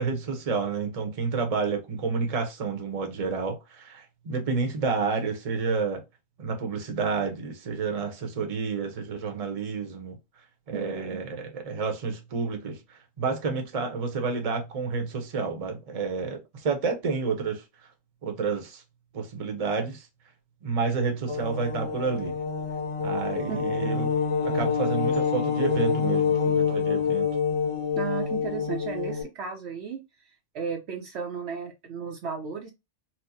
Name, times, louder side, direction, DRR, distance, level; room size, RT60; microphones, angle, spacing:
voice 1, 0.0-6.0 6.4-10.2 10.7-17.6 18.2-18.8 19.1-20.1 20.6-22.4 23.0-24.1 24.4-27.3, right 4 dB, 35° right, 0.7 m, -30 dB
voice 2, 10.7-11.2 23.5-23.6 28.0-30.0 30.5-32.7, right 6 dB, 65° right, 0.8 m, -34 dB
sound 1, 21.3-29.2, left 6 dB, 25° left, 1.0 m, -27 dB
4.3 x 2.0 x 2.7 m
omnidirectional pair, 1.3 m